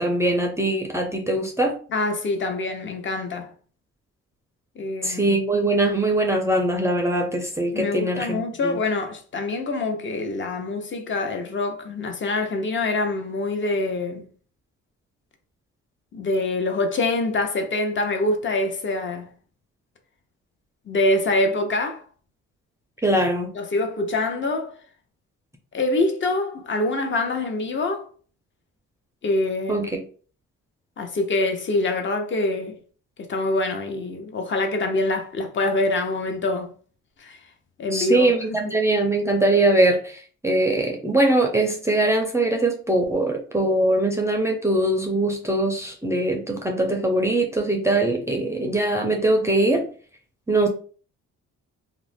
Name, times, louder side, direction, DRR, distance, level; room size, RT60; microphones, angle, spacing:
voice 1, 0.0-1.7 5.0-8.8 23.0-23.5 29.7-30.0 37.9-49.8 50.5-50.7, right 2 dB, 10° right, 0.5 m, -22 dB
voice 2, 1.9-3.5 4.8-5.4 7.7-14.2 16.1-19.3 20.9-22.0 23.5-24.7 25.7-28.1 29.2-29.9 31.0-32.8 33.3-36.7 37.2-37.4 37.8-38.8, left 2 dB, 40° left, 0.7 m, -25 dB
2.4 x 2.0 x 3.3 m
cardioid pair, 90°, 30 cm